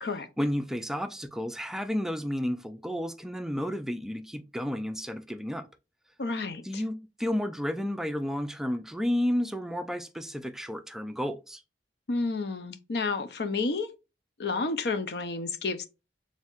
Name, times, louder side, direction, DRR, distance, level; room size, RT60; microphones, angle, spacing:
voice 1, 0.4-5.7 6.6-11.6, equal, 5° right, 0.3 m, -31 dB
voice 2, 6.2-6.8 12.1-13.9 14.4-15.9, left 3 dB, 65° left, 0.6 m, -30 dB
4.5 x 3.5 x 2.4 m
head